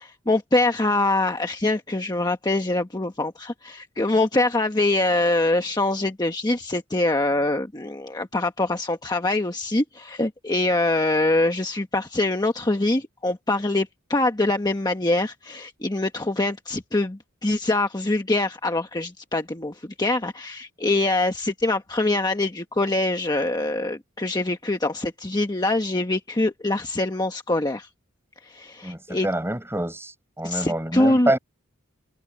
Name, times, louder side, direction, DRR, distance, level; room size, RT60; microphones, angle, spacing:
voice 1, 0.0-27.9 28.4-29.3 30.4-31.3, left 2 dB, 20° left, 1.2 m, -24 dB
voice 2, 28.8-31.4, right 1 dB, 10° right, 6.0 m, -26 dB
head